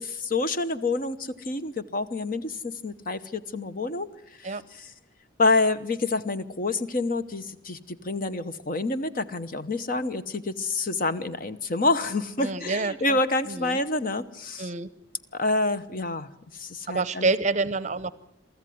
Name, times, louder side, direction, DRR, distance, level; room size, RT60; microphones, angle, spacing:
voice 1, 0.0-4.1 5.4-14.7 15.3-16.3 16.6-17.3, left 3 dB, 45° left, 11 dB, 0.9 m, -27 dB
voice 2, 12.4-13.2 13.5-13.8 14.6-14.9 16.9-18.1, right 3 dB, 35° right, 17 dB, 0.7 m, -27 dB
23.5 x 14.0 x 9.4 m, 0.85 s
head